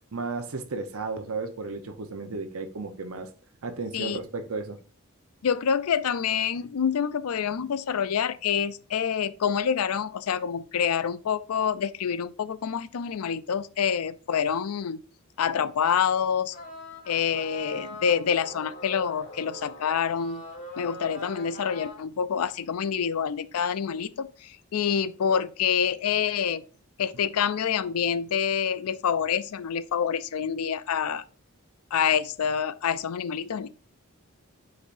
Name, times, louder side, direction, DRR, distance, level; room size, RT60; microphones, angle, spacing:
voice 1, 0.1-3.3 3.6-4.8, right 3 dB, 75° right, 0.8 m, -34 dB
voice 2, 5.4-15.0 15.4-16.6 17.1-20.4 20.8-26.6 27.0-31.2 31.9-33.7, left 7 dB, 85° left, 0.4 m, -27 dB
sound 1, 16.5-22.0, equal, 35° left, 2.3 m, -42 dB
9.9 x 4.1 x 2.5 m
head